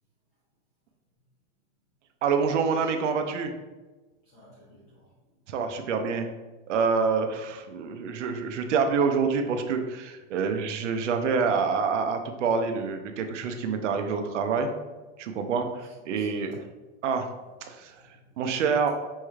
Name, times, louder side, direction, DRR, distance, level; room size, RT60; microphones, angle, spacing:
voice 1, 2.2-3.5 5.5-6.3 6.7-14.7 15.2-16.6 17.0-17.3 17.6-17.9 18.4-18.9, right 5 dB, 70° right, 6 dB, 0.6 m, -27 dB
voice 2, 4.2-5.0 7.9-8.6 13.5-13.6 15.2-15.4 15.8-16.4 17.9-18.4, equal, 10° left, -9 dB, 0.4 m, -57 dB
5.4 x 3.1 x 2.3 m, 1.2 s
supercardioid pair, 175°, 38 cm